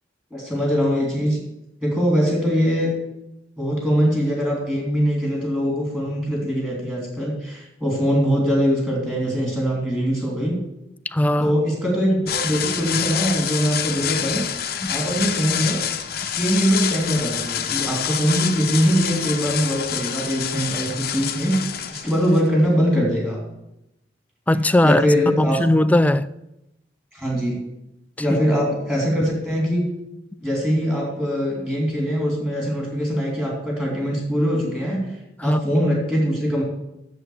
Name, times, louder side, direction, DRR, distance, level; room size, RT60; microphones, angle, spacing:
voice 1, 0.3-1.4 1.8-2.9 3.6-10.6 11.4-14.4 14.9-15.8 16.2-23.4 24.8-25.6 27.1-27.6 28.2-29.9 30.4-35.1 35.4-36.6, equal, 10° right, 3.0 m, -22 dB
voice 2, 11.1-11.5 14.8-14.9 24.5-25.0 25.4-26.3 35.4-35.6, left 1 dB, 10° left, 0.3 m, -18 dB
sound 1, 12.3-22.9, left 9 dB, 60° left, 0.8 m, -27 dB
8.0 x 7.4 x 7.9 m
head